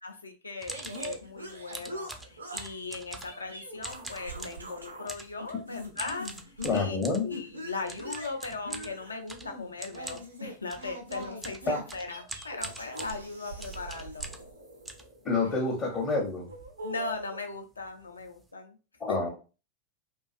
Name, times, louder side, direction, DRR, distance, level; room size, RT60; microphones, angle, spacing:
voice 1, 0.0-6.3 6.7-7.0 7.2-14.3 16.8-18.8 19.1-19.3, left 3 dB, 75° left, 0.4 m, -38 dB
sound 1, 0.6-1.3 1.7-3.5 3.8-4.7 5.1-5.4 6.0-7.3 7.9-14.5 14.9-15.7 16.2-16.3 16.5-16.8 17.0-17.2 17.8-17.9 18.2-18.4, right 2 dB, 10° right, 0.3 m, -43 dB
sound 2, 0.7-2.8 3.2-5.1 5.4-6.9 7.3-15.3 16.0-17.4, equal, 80° right, 0.5 m, -42 dB
voice 2, 6.6-7.3 11.7-11.8 15.2-16.5 19.0-19.3, left 3 dB, 25° left, 0.6 m, -28 dB
2.5 x 2.4 x 2.3 m
figure-of-eight pair, 90°, 0 cm